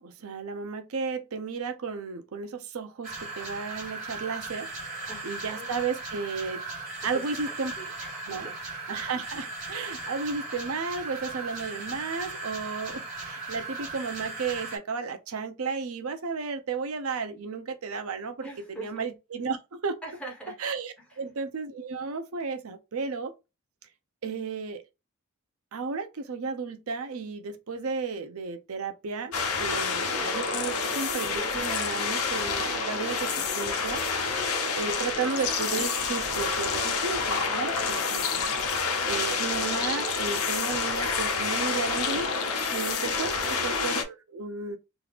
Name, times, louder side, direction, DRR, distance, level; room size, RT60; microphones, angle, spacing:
voice 1, 0.0-6.6 7.0-7.7 8.3-20.0 20.6-23.3 24.2-24.8 25.7-34.0 34.4-34.5 34.8-38.5 38.8-42.3 42.7-44.8, right 4 dB, 85° right, 0.6 m, -34 dB
sound 1, 3.0-14.8, right 3 dB, 40° right, 1.5 m, -38 dB
voice 2, 5.1-5.7 7.1-7.2 7.8-8.5 18.4-18.9 20.0-20.6 29.7-30.0 37.9-38.0 43.3-43.7, right 2 dB, 5° left, 1.2 m, -43 dB
sound 2, 29.3-44.0, left 4 dB, 85° left, 0.8 m, -28 dB
3.1 x 2.4 x 3.3 m
head